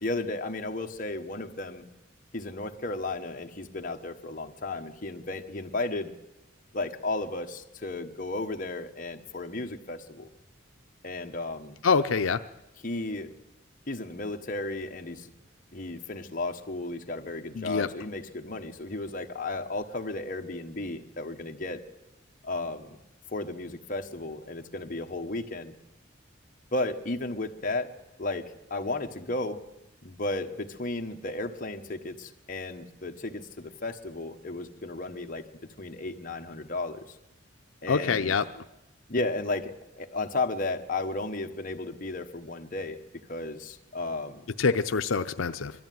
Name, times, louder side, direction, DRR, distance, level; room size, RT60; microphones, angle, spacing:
voice 1, 0.0-1.9 2.3-6.1 6.7-10.3 11.0-11.8 12.8-13.3 13.9-15.3 15.7-21.8 22.4-23.0 23.3-25.7 26.7-27.9 28.2-29.6 30.0-35.5 35.8-37.2 37.8-38.4 39.1-43.0 43.3-44.5, left 2 dB, 45° left, 4 dB, 1.3 m, -34 dB
voice 2, 11.8-12.4 17.5-17.9 37.9-38.4 44.6-45.7, left 5 dB, 90° left, 8 dB, 0.6 m, -25 dB
21.5 x 13.0 x 9.3 m, 0.94 s
head